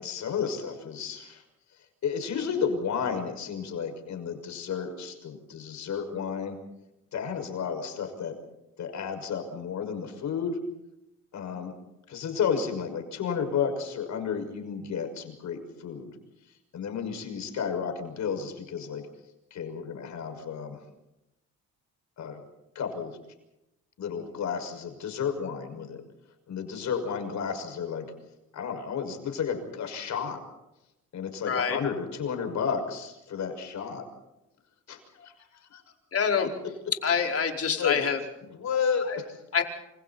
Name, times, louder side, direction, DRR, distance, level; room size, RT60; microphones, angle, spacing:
voice 1, 0.0-1.4 2.0-6.6 7.1-8.4 8.8-10.6 11.3-11.7 12.1-16.1 16.7-19.1 19.5-20.8 22.2-22.4 22.7-23.2 24.0-26.0 26.5-28.1 28.5-30.4 31.1-34.1 34.9-35.9 37.8-38.1 38.5-39.4, left 6 dB, 70° left, 6 dB, 6.1 m, -32 dB
voice 2, 31.5-31.8 36.1-36.5 37.0-38.2 39.1-39.2 39.5-39.6, left 6 dB, 50° left, 2 dB, 4.9 m, -26 dB
28.0 x 27.0 x 4.3 m, 0.90 s
cardioid pair, 90°, 30 cm